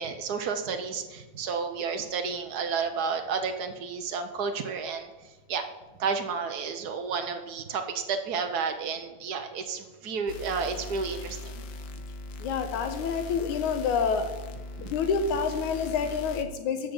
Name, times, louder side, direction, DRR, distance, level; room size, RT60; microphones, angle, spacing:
voice 1, 0.0-5.6 6.0-11.6 14.8-14.9, right 5 dB, 85° right, 5 dB, 0.8 m, -31 dB
sound 1, 10.3-16.4, left 2 dB, 70° left, 1.1 m, -40 dB
voice 2, 12.4-14.3 14.8-16.9, left 6 dB, 85° left, 7 dB, 2.8 m, -28 dB
13.0 x 5.7 x 8.1 m, 1.1 s
omnidirectional pair, 3.3 m